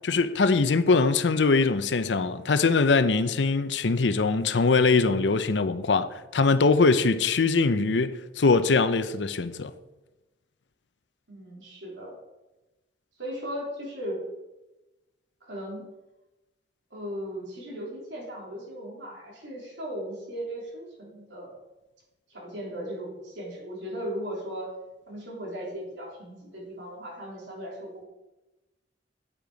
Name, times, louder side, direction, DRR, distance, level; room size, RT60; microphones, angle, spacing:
voice 1, 0.0-9.7, left 4 dB, 75° left, 0.6 m, -22 dB
voice 2, 11.3-12.2 13.2-14.2 15.4-15.9 16.9-21.6 22.3-24.7 25.1-28.1, equal, 80° right, 3.6 m, -37 dB
8.7 x 8.0 x 5.1 m
head